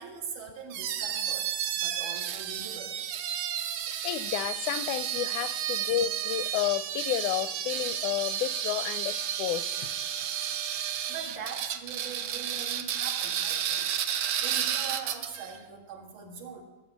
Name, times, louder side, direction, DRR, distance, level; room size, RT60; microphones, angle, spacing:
voice 1, 0.0-3.0 11.1-16.6, right 6 dB, 90° right, 3.5 m, -42 dB
sound 1, 0.7-15.5, right 9 dB, 70° right, 1.8 m, -32 dB
voice 2, 3.9-9.7, left 13 dB, 85° left, 1.9 m, -31 dB
16.5 x 8.5 x 5.9 m
omnidirectional pair, 3.4 m